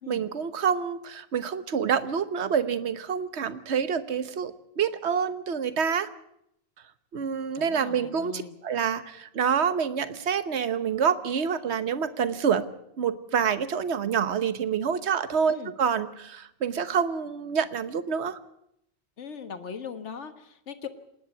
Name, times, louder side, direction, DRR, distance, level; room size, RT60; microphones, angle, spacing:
voice 1, 0.1-6.1 7.1-12.7 13.0-18.4, right 7 dB, 70° right, 13 dB, 1.3 m, -27 dB
voice 2, 7.5-8.5 15.4-15.7 19.2-20.9, left 6 dB, 75° left, 9 dB, 1.7 m, -40 dB
27.0 x 10.5 x 9.3 m, 0.76 s
omnidirectional pair, 1.2 m